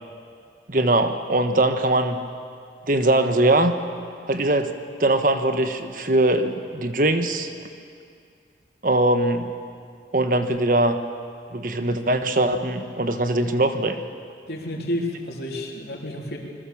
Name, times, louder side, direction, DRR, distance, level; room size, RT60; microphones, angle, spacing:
voice 1, 0.7-2.2 2.9-3.7 4.3-4.7 5.0-7.5 8.8-9.5 10.1-11.0 11.5-14.0, right 1 dB, 50° right, 8 dB, 1.3 m, -21 dB
voice 2, 14.5-16.4, left 1 dB, 60° left, 0 dB, 3.6 m, -30 dB
27.0 x 21.5 x 7.3 m, 2.3 s
head